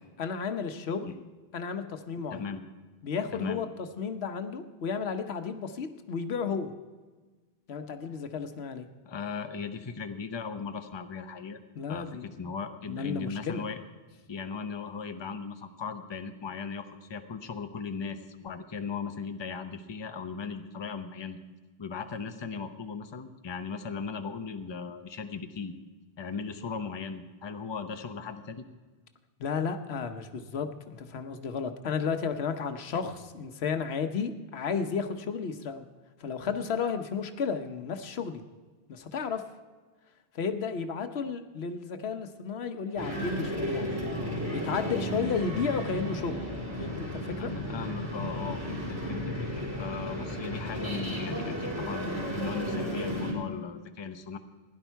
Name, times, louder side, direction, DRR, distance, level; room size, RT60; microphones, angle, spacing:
voice 1, 0.2-1.1 1.5-2.4 3.0-6.7 7.7-8.9 11.8-12.5 12.9-13.6 29.4-35.9 36.2-38.4 38.9-39.4 40.3-44.0 44.5-46.5 46.8-47.5 49.0-49.2, left 6 dB, 90° left, 8 dB, 1.1 m, -33 dB
voice 2, 2.3-2.6 3.3-3.6 9.0-11.6 11.9-13.8 14.3-21.4 21.8-25.7 26.2-28.7 47.4-54.4, left 5 dB, 30° left, 8 dB, 0.7 m, -38 dB
sound 1, 43.0-53.3, equal, 15° right, 3.9 m, -33 dB
16.0 x 11.0 x 4.6 m, 1.3 s
omnidirectional pair, 1.0 m